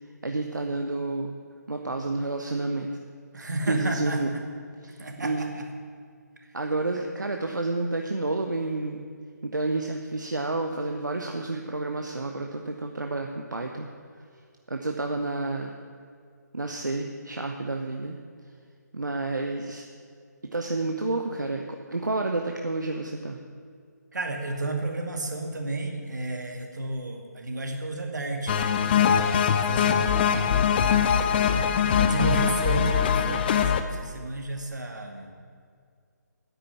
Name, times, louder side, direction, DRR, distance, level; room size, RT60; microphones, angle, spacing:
voice 1, 0.2-1.4 1.7-2.9 3.7-4.3 4.8-5.6 6.5-9.1 9.4-13.9 14.7-15.7 16.5-18.2 18.9-19.8 20.5-23.4, right 2 dB, 90° right, 3 dB, 1.1 m, -30 dB
voice 2, 3.3-4.4 5.0-5.7 6.4-6.7 24.1-30.6 32.0-35.3, right 2 dB, 75° right, 3 dB, 2.3 m, -32 dB
sound 1, 28.5-33.8, left 8 dB, 30° left, 0.7 m, -22 dB
10.0 x 9.2 x 8.5 m, 2.2 s
figure-of-eight pair, 150°, 10 cm